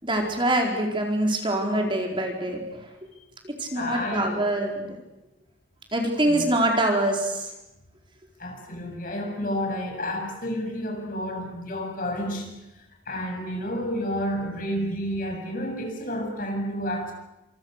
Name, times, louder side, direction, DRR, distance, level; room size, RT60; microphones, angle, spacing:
voice 1, 0.0-2.9 3.4-5.0 5.9-7.5, right 1 dB, 25° right, 2 dB, 4.5 m, -25 dB
voice 2, 3.8-4.5 6.3-6.4 8.4-12.5 13.1-17.1, equal, 45° left, 2 dB, 7.4 m, -30 dB
29.0 x 27.5 x 6.7 m, 0.94 s
head